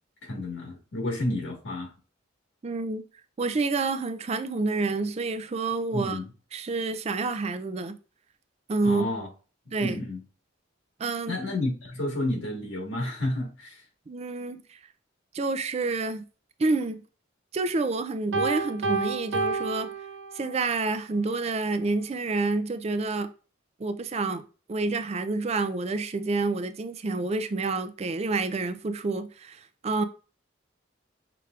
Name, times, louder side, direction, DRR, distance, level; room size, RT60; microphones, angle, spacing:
voice 1, 0.2-1.9 5.9-6.3 8.8-9.3 9.8-10.2 11.3-13.8, left 1 dB, 80° left, 1.6 m, -30 dB
voice 2, 2.6-3.0 3.4-6.2 6.5-7.9 8.7-9.1 9.7-10.0 11.0-11.4 14.1-14.8 15.3-16.2 16.6-17.0 17.5-19.9 20.3-23.3 23.8-24.4 24.7-30.0, right 3 dB, 35° right, 0.4 m, -28 dB
Piano, 18.3-20.7, right 4 dB, 70° right, 0.7 m, -29 dB
5.8 x 3.3 x 2.4 m
head